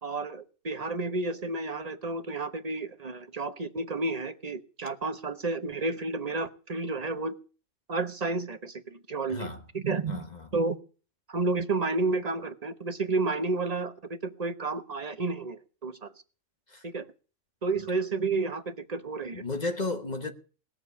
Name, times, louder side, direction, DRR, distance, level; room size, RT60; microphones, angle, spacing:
voice 1, 0.0-7.3 7.9-9.5 9.7-10.8 11.3-16.1 16.8-17.1 17.6-19.4, right 3 dB, 30° right, 1.0 m, -31 dB
voice 2, 9.3-9.6 10.1-10.4 16.7-16.8 19.3-20.3, left 2 dB, 30° left, 1.3 m, -33 dB
18.5 x 7.2 x 8.3 m
omnidirectional pair, 1.5 m